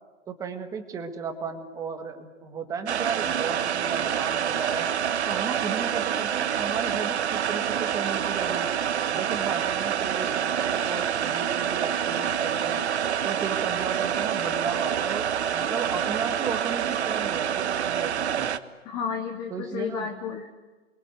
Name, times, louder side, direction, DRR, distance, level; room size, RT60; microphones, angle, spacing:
voice 1, 0.3-4.9 5.3-8.7 9.1-12.8 13.2-18.5 19.5-20.1, right 5 dB, 10° right, 7 dB, 1.7 m, -34 dB
sound 1, 2.9-18.6, right 9 dB, 60° right, 1.5 m, -27 dB
voice 2, 18.9-20.5, left 6 dB, 10° left, 5 dB, 0.8 m, -32 dB
29.5 x 22.5 x 8.1 m, 1.3 s
hypercardioid pair, 165°, 37 cm